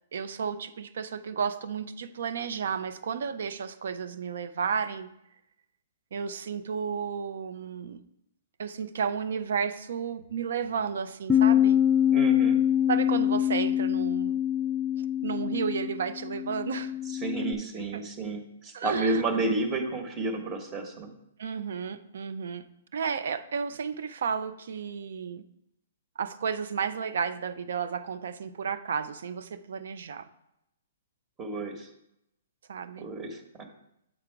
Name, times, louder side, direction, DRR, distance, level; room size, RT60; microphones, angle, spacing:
voice 1, 0.1-5.1 6.1-8.0 8.6-11.8 12.9-14.4 15.2-16.9 18.7-19.2 21.4-22.7 22.9-25.4 26.2-30.3 32.7-33.1, right 6 dB, 70° right, 12 dB, 0.5 m, -32 dB
Bass guitar, 11.3-17.5, left 10 dB, 5° left, 0.4 m, -25 dB
voice 2, 12.1-12.6 17.1-21.1 31.4-31.9 33.0-33.7, right 2 dB, 25° right, 5 dB, 1.1 m, -31 dB
7.7 x 3.8 x 4.6 m, 0.81 s
hypercardioid pair, 130°, 0 cm